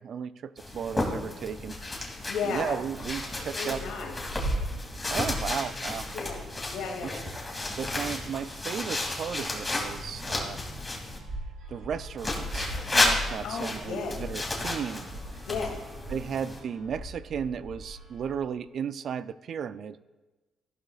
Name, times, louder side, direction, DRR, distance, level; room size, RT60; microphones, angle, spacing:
voice 1, 0.0-1.8 2.4-3.8 5.1-6.1 7.0-7.2 7.8-10.6 11.7-15.1 16.1-20.0, right 7 dB, 60° right, 14 dB, 0.4 m, -35 dB
sound 1, 0.6-11.2 12.2-16.6, left 2 dB, 20° left, 2.7 m, -32 dB
voice 2, 2.3-2.8 3.5-4.1 6.1-6.4 6.7-7.1 13.4-14.2 15.5-15.8, left 5 dB, 85° left, 1 dB, 2.4 m, -33 dB
sound 2, 2.8-18.4, right 1 dB, 85° right, 3.3 m, -42 dB
14.5 x 11.5 x 2.4 m, 1.2 s
cardioid pair, 90°, 0 cm